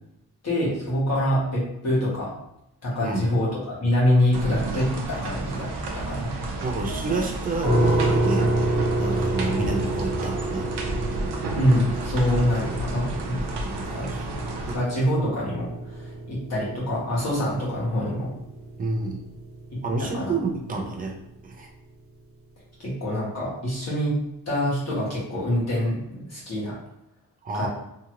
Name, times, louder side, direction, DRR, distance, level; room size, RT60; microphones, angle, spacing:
voice 1, 0.4-2.3 2.8-6.3 11.6-13.4 13.9-14.1 14.7-18.3 19.7-20.3 22.8-24.2 24.5-26.8 27.5-27.7, left 1 dB, 40° left, -7 dB, 1.3 m, -25 dB
sound 1, 4.3-14.8, right 2 dB, 70° right, 0.6 m, -31 dB
voice 2, 6.6-10.7 13.7-14.3 14.7-14.8 18.8-19.2 19.8-21.2 21.4-21.7 27.4-27.7, right 3 dB, 20° right, 1 dB, 0.4 m, -29 dB
sound 2, 7.6-20.5, right 2 dB, 45° right, 1.2 m, -29 dB
2.8 x 2.4 x 2.9 m, 0.85 s
wide cardioid pair, 165°, 41 cm